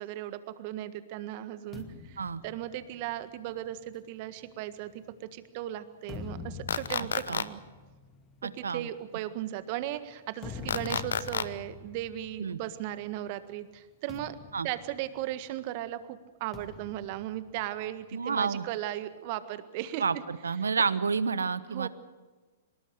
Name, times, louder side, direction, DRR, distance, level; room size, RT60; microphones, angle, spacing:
voice 1, 0.0-5.0 5.3-7.6 8.4-14.4 14.6-20.2 21.7-21.9, right 13 dB, 45° right, 12 dB, 1.6 m, -37 dB
sound 1, 1.7-5.3 5.8-13.3 13.5-13.7 14.1-15.7 16.5-18.3, left 5 dB, 20° left, 2.3 m, -46 dB
sound 2, 6.7-7.4 10.7-11.4, left 7 dB, 70° left, 0.9 m, -29 dB
voice 2, 7.0-7.4 8.4-8.9 12.4-12.6 14.5-14.7 18.1-18.6 20.0-21.9, right 5 dB, 75° right, 16 dB, 1.1 m, -30 dB
24.0 x 21.0 x 6.5 m, 1.3 s
figure-of-eight pair, 110°, 0 cm